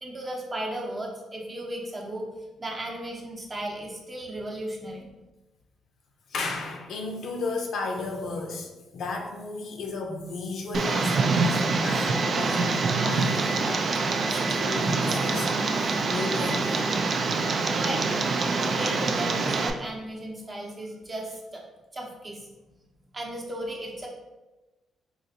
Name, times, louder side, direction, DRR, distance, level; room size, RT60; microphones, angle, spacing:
voice 1, 0.0-2.3 2.6-5.1 17.7-18.0 18.6-21.6 21.9-22.5 23.1-24.1, right 1 dB, 30° right, -1 dB, 0.7 m, -35 dB
voice 2, 6.3-16.7, left 3 dB, 70° left, 2 dB, 0.5 m, -34 dB
Tick, 10.7-19.7, right 3 dB, 50° right, 0.3 m, -25 dB
3.9 x 2.4 x 2.7 m, 1.1 s
cardioid pair, 90°, 0 cm